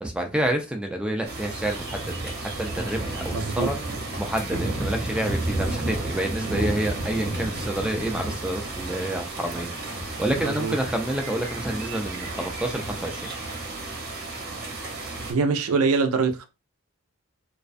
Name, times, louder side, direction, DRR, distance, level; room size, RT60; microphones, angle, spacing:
voice 1, 0.0-2.3 2.6-3.8 4.2-13.3, right 1 dB, 5° right, 0.3 m, -28 dB
sound 1, 1.2-15.3, right 2 dB, 45° right, 0.8 m, -32 dB
voice 2, 3.3-3.7 10.4-10.8 15.3-16.5, right 4 dB, 80° right, 0.4 m, -24 dB
2.4 x 2.2 x 2.4 m
head